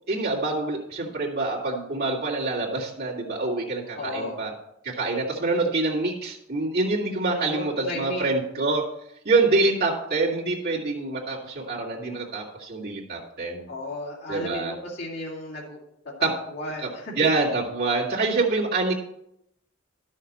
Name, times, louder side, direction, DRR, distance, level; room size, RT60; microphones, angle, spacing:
voice 1, 0.1-4.5 4.8-8.8 9.2-13.7 14.3-14.7 16.2-16.3 16.8-16.9 17.2-18.9, right 3 dB, 50° right, -6 dB, 2.4 m, -26 dB
voice 2, 4.0-4.4 7.3-8.3 13.7-15.8 16.2-17.3, left 1 dB, 55° left, -4 dB, 2.5 m, -34 dB
11.5 x 6.5 x 4.2 m, 0.78 s
head